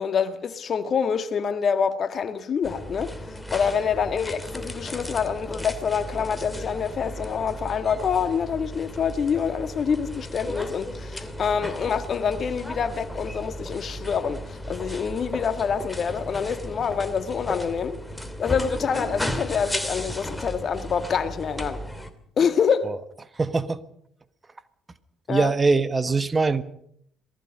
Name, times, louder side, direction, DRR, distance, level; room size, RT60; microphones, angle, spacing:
voice 1, 0.0-3.1 3.5-18.0 18.4-21.8 22.4-22.9 25.3-25.5, left 6 dB, 45° left, 1.8 m, -26 dB
sound 1, 2.6-22.1, equal, 5° left, 2.8 m, -35 dB
sound 2, 4.7-18.7, right 2 dB, 65° right, 6.8 m, -52 dB
voice 2, 23.3-23.8 25.3-26.6, right 4 dB, 25° right, 1.4 m, -22 dB
27.5 x 19.0 x 5.4 m
figure-of-eight pair, 50°, 0 cm